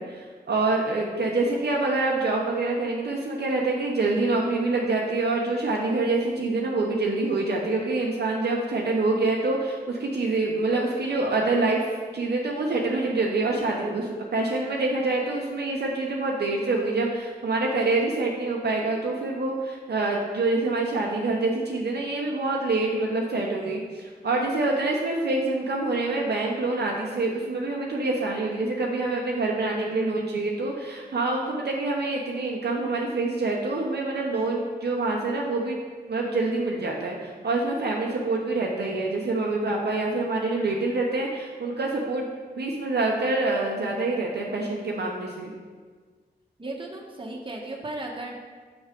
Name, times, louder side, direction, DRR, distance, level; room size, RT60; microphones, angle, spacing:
voice 1, 0.0-11.9 12.1-35.8 36.1-42.3 42.6-45.6, right 2 dB, 65° right, -1 dB, 0.8 m, -26 dB
voice 2, 46.6-48.4, right 2 dB, 30° right, -1 dB, 1.2 m, -35 dB
7.1 x 3.2 x 5.1 m, 1.5 s
cardioid pair, 45°, 18 cm